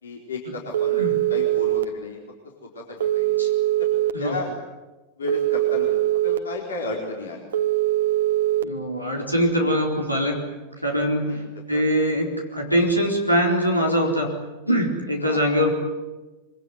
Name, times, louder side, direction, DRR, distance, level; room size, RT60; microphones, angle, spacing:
voice 1, 0.0-1.0 1.3-2.2 2.6-3.3 3.8-3.9 4.2-4.5 5.2-6.0 6.2-7.4 11.3-11.4 11.7-11.8 15.2-15.5, left 2 dB, 70° left, -1 dB, 4.3 m, -33 dB
Telephone, 0.7-1.8 3.0-4.1 5.3-6.4 7.5-8.6, right 14 dB, 65° right, 1.4 m, -22 dB
voice 2, 8.6-10.4 10.8-11.3 11.7-14.3 14.7-15.7, equal, 90° left, 0 dB, 4.1 m, -22 dB
25.0 x 24.0 x 9.6 m, 1.2 s
figure-of-eight pair, 90°, 0 cm